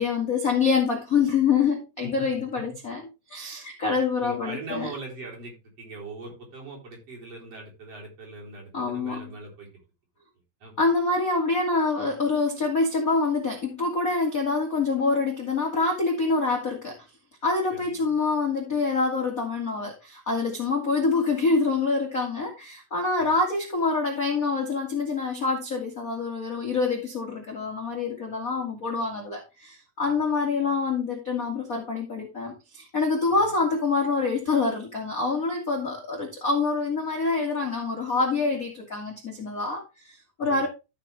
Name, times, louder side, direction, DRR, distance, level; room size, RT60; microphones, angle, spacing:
voice 1, 0.0-3.0 3.3-4.9 8.7-9.3 10.8-17.0 17.4-40.7, left 4 dB, 35° left, 1.5 m, -26 dB
voice 2, 4.2-9.7 10.6-10.7 17.7-17.9 23.2-23.3 33.3-33.5 40.4-40.7, right 2 dB, 40° right, 4.7 m, -41 dB
14.0 x 5.8 x 3.4 m
omnidirectional pair, 4.5 m